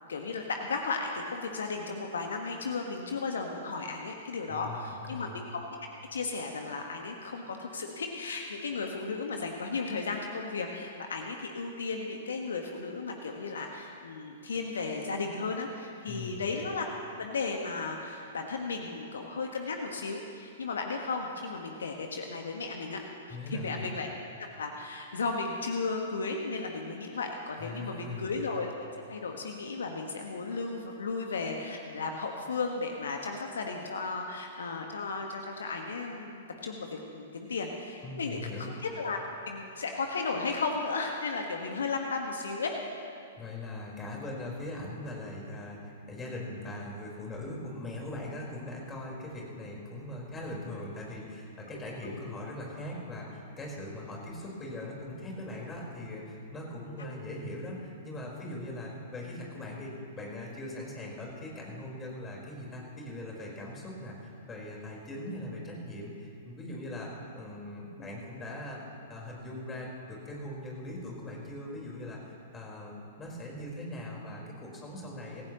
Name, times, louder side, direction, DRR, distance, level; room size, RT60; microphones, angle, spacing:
voice 1, 0.1-5.8 6.1-16.9 17.2-23.0 23.5-24.1 24.4-28.7 29.1-39.2 39.5-43.0 51.7-51.8 52.0-52.2 57.0-57.1, left 4 dB, 65° left, 2 dB, 1.5 m, -35 dB
voice 2, 4.5-5.3 16.0-16.5 23.3-23.9 27.6-28.3 38.0-38.7 43.4-68.8 69.1-75.4, left 1 dB, 15° left, -3 dB, 4.5 m, -40 dB
26.5 x 15.5 x 3.1 m, 2.5 s
figure-of-eight pair, 110°, 0 cm